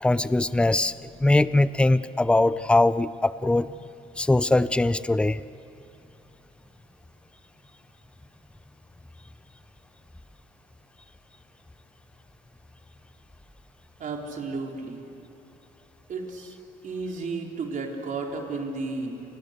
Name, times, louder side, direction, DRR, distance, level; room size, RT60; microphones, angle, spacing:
voice 1, 0.0-0.9 1.2-3.7 4.2-5.4, left 2 dB, 5° left, 15 dB, 0.6 m, -21 dB
voice 2, 14.0-15.0 16.1-16.5 16.8-19.2, right 3 dB, 50° right, 1 dB, 4.0 m, -33 dB
29.5 x 25.0 x 6.7 m, 2.8 s
cardioid pair, 110°, 17 cm